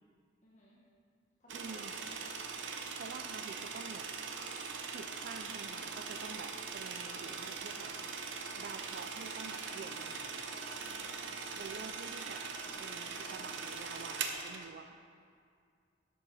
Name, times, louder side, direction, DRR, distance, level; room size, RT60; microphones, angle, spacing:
voice 1, 0.4-0.8 1.4-2.0 7.0-8.0 10.8-11.2 12.6-13.7, left 1 dB, 40° left, -7 dB, 1.3 m, -61 dB
voice 2, 1.5-1.9 3.0-4.1 4.9-7.9 8.6-10.4 11.6-12.5 12.8-15.0, right 5 dB, 55° right, 7 dB, 0.4 m, -48 dB
sound 1, 1.5-14.7, right 5 dB, 70° right, 0.8 m, -41 dB
11.5 x 7.4 x 4.1 m, 2.3 s
head